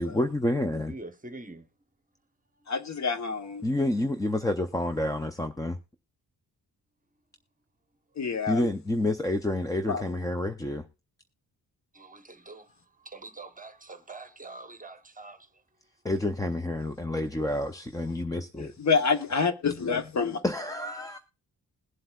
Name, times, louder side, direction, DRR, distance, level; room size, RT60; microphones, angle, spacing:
voice 1, 0.0-0.9 3.6-5.8 8.5-10.9 16.0-18.7 20.4-21.2, left 1 dB, 10° left, 0.4 m, -29 dB
voice 2, 0.8-1.7 11.9-12.7 13.0-15.5, right 2 dB, 20° right, 0.9 m, -44 dB
voice 3, 2.7-3.6 8.2-8.7 9.9-10.0 18.8-20.4, left 5 dB, 45° left, 0.9 m, -27 dB
21.0 x 7.7 x 2.3 m
wide cardioid pair, 140°, 39 cm